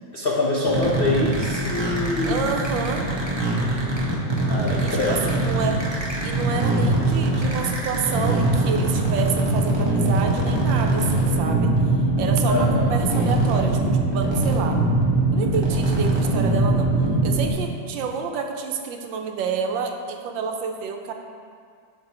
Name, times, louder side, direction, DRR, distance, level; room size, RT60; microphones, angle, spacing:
voice 1, 0.1-2.4 4.5-5.4 12.5-13.0, left 2 dB, 75° left, -4 dB, 0.5 m, -24 dB
sound 1, 0.7-17.5, right 2 dB, 25° right, 0.6 m, -22 dB
voice 2, 2.3-3.1 4.8-5.8 6.2-11.7 12.2-14.8 15.3-16.9 17.2-21.1, right 6 dB, 75° right, 3 dB, 1.4 m, -29 dB
11.5 x 6.2 x 2.9 m, 2.2 s
omnidirectional pair, 2.1 m